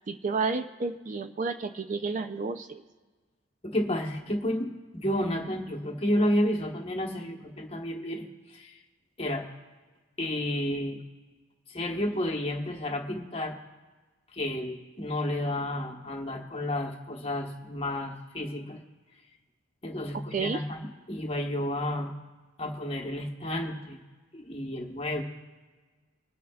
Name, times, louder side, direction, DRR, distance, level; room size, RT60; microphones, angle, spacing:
voice 1, 0.1-2.8 20.3-20.6, right 4 dB, 40° right, 9 dB, 0.4 m, -31 dB
voice 2, 3.6-8.8 9.2-9.5 10.2-11.0 11.7-13.6 14.3-18.8 19.8-20.8 21.1-22.1 22.6-24.0 24.3-25.2, left 1 dB, 30° left, 1 dB, 1.2 m, -31 dB
25.5 x 9.3 x 2.4 m, 1.3 s
head